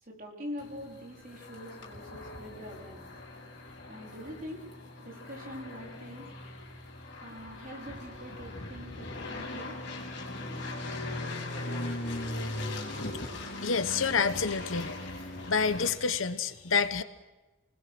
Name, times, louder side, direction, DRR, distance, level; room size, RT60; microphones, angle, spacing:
voice 1, 0.0-3.1 3.9-4.7 5.0-6.3 7.2-9.7, equal, 40° right, 0 dB, 4.4 m, -44 dB
sound 1, 0.6-15.9, left 2 dB, 55° left, 4.1 m, -39 dB
voice 2, 13.6-15.0 15.5-17.0, left 5 dB, 80° left, 12 dB, 1.1 m, -28 dB
29.0 x 20.0 x 6.2 m, 1.1 s
head